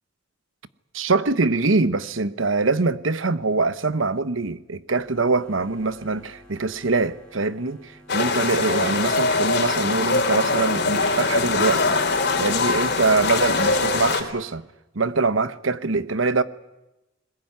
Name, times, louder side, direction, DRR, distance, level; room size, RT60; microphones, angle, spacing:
voice 1, 0.9-12.0 12.4-14.7 14.9-16.4, right 3 dB, 80° right, 1.1 m, -23 dB
sound 1, 5.0-14.1, equal, 5° left, 6.1 m, -43 dB
sound 2, 8.1-14.2, left 3 dB, 55° left, 3.4 m, -22 dB
21.5 x 20.5 x 9.6 m
head